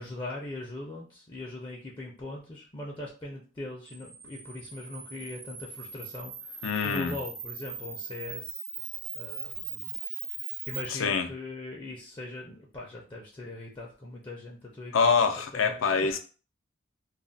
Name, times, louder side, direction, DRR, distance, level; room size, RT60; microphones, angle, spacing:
voice 1, 0.0-8.6 9.1-9.9 10.6-15.1 15.5-16.2, left 2 dB, 25° left, 0.4 m, -41 dB
Camera, 3.9-10.9, right 6 dB, 70° right, 0.7 m, -40 dB
voice 2, 6.6-7.2 10.9-11.3 14.9-16.2, left 5 dB, 85° left, 0.5 m, -25 dB
2.4 x 2.0 x 3.8 m
head